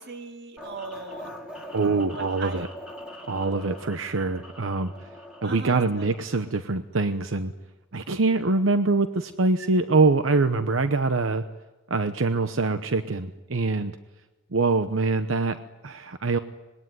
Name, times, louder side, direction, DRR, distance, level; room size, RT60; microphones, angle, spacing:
voice 1, 0.0-1.3 2.1-2.7 5.4-6.1, right 3 dB, 60° right, 6 dB, 2.1 m, -38 dB
sound 1, 0.6-6.5, left 1 dB, 5° right, 4.8 m, -42 dB
voice 2, 1.7-2.7 3.3-5.1 5.4-7.5 7.9-11.4 11.9-14.0 14.5-16.4, right 3 dB, 85° right, 9 dB, 0.9 m, -24 dB
25.5 x 21.0 x 9.5 m, 1.1 s
head